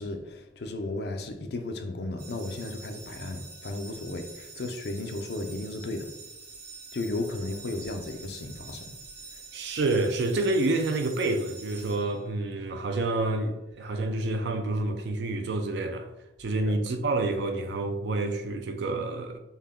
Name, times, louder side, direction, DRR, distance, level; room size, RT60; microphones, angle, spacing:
voice 1, 0.0-6.1 6.9-9.0 9.3-9.4 16.6-16.8, left 2 dB, 55° left, 0.5 m, -34 dB
sound 1, 2.2-12.6, right 4 dB, 85° right, 1.3 m, -46 dB
voice 2, 9.5-16.1 16.4-19.4, right 2 dB, 65° right, 0.4 m, -28 dB
5.4 x 2.2 x 3.6 m
head